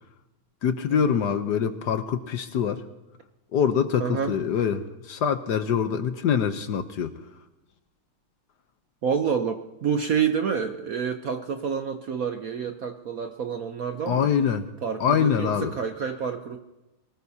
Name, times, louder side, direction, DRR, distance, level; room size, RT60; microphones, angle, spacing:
voice 1, 0.6-2.8 3.5-7.1 14.1-14.7 15.0-15.7, left 7 dB, 65° left, 9 dB, 1.2 m, -24 dB
voice 2, 4.0-4.4 9.0-14.3 14.8-16.6, right 7 dB, 60° right, 7 dB, 0.9 m, -28 dB
23.0 x 19.0 x 2.8 m, 1.0 s
omnidirectional pair, 2.2 m